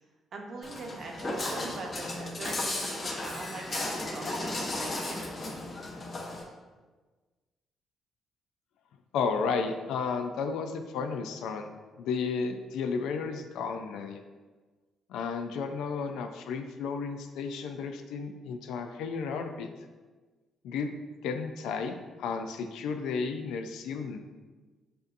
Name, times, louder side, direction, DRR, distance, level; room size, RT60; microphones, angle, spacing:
voice 1, 0.3-5.5, right 3 dB, 55° right, 1 dB, 0.8 m, -42 dB
Walk footsteps, 0.6-6.4, left 2 dB, 35° left, 1.0 m, -35 dB
voice 2, 9.1-11.7 12.0-14.2 15.1-19.7 20.6-20.9 21.2-24.2, left 5 dB, 90° left, 6 dB, 0.4 m, -33 dB
7.7 x 2.6 x 2.6 m, 1.3 s
cardioid pair, 90°, 0 cm